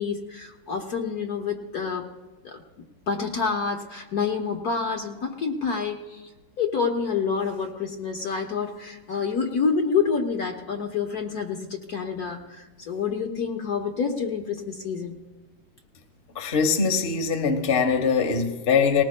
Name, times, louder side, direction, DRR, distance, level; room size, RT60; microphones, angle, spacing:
voice 1, 0.0-2.0 2.4-2.6 3.1-6.2 6.6-15.2, left 5 dB, 55° left, 3 dB, 1.3 m, -28 dB
voice 2, 16.3-19.0, left 5 dB, 35° left, 4 dB, 1.1 m, -22 dB
20.0 x 19.0 x 2.2 m, 1.2 s
omnidirectional pair, 2.3 m